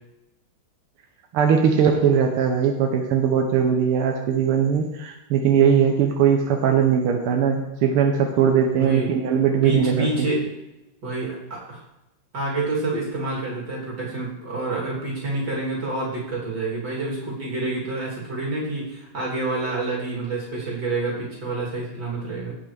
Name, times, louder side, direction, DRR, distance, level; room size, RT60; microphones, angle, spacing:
voice 1, 1.3-10.3, right 7 dB, 90° right, 3 dB, 1.8 m, -20 dB
voice 2, 8.7-9.1 9.6-10.5 11.0-11.8 12.3-22.5, right 2 dB, 50° right, -5 dB, 3.7 m, -28 dB
16.5 x 6.1 x 3.4 m, 0.97 s
omnidirectional pair, 2.4 m